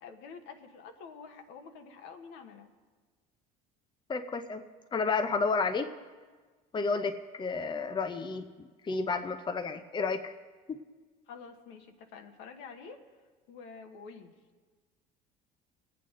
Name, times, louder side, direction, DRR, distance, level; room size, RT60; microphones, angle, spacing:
voice 1, 0.0-2.7 11.3-13.0 13.5-14.3, left 5 dB, 70° left, 5 dB, 1.3 m, -48 dB
voice 2, 4.1-4.6 4.9-5.9 6.7-10.3, left 4 dB, 25° left, 8 dB, 0.7 m, -31 dB
22.5 x 8.6 x 3.8 m, 1.4 s
supercardioid pair, 80°, 19 cm